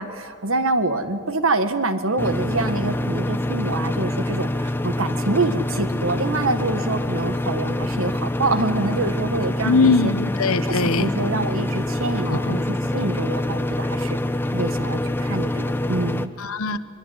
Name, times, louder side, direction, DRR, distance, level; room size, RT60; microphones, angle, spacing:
voice 1, 0.0-10.1 10.7-14.2 14.5-16.3, right 2 dB, 65° right, 9 dB, 1.7 m, -26 dB
sound 1, 2.2-16.3, left 1 dB, 10° left, 0.6 m, -25 dB
voice 2, 9.6-11.1 12.3-12.6 16.4-16.8, left 3 dB, 75° left, 12 dB, 1.1 m, -21 dB
23.5 x 22.5 x 9.6 m, 2.1 s
head